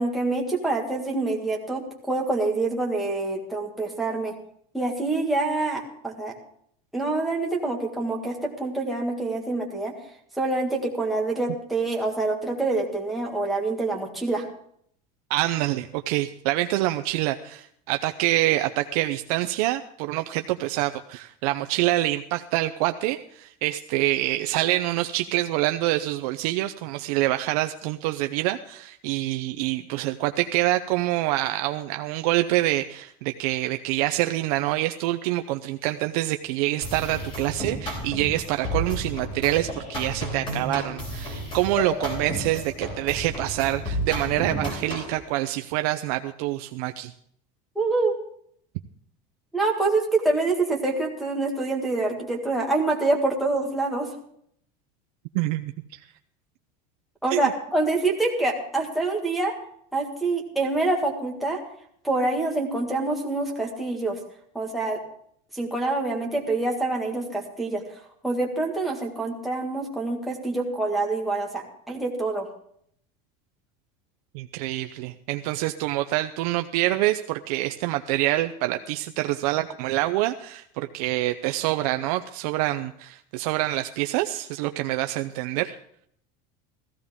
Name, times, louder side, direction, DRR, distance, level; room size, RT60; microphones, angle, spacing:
voice 1, 0.0-4.3 4.7-6.3 6.9-9.9 10.4-14.4 47.8-48.1 49.5-54.1 57.2-59.5 59.9-61.6 62.0-64.2 64.6-65.0 65.5-67.8 68.2-72.5, right 2 dB, ahead, -3 dB, 1.7 m, -26 dB
voice 2, 15.3-47.1 55.3-55.7 57.3-57.5 74.3-85.8, right 16 dB, 65° right, 7 dB, 0.6 m, -26 dB
sound 1, 36.8-45.2, equal, 25° left, 3.8 m, -32 dB
15.5 x 15.0 x 3.6 m, 0.67 s
cardioid pair, 180°, 21 cm